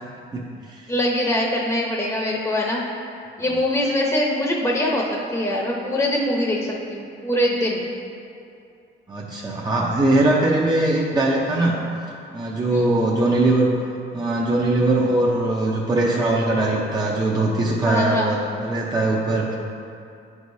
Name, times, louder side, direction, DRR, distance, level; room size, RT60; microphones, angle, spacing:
voice 1, 0.3-0.9 9.1-11.8 12.3-13.7 14.1-19.6, right 2 dB, 20° right, -4 dB, 0.7 m, -21 dB
voice 2, 0.9-2.8 3.4-7.9 12.7-12.8 17.8-18.3, left 1 dB, 15° left, -2 dB, 0.8 m, -23 dB
9.8 x 4.8 x 2.7 m, 2.5 s
cardioid pair, 90°, 20 cm